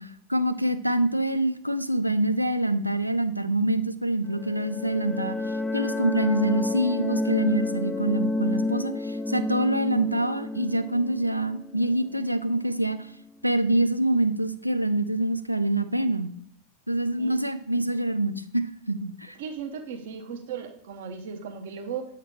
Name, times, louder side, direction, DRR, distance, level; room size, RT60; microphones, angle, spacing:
voice 1, 0.0-5.4 5.7-13.0 13.4-16.3 16.9-19.4, right 1 dB, 90° right, 10 dB, 0.4 m, -25 dB
sound 1, 4.2-12.8, left 2 dB, 5° left, 0.4 m, -30 dB
voice 2, 19.4-22.1, right 6 dB, 55° right, 6 dB, 0.8 m, -36 dB
8.0 x 3.6 x 4.5 m, 0.65 s
figure-of-eight pair, 90°, 0 cm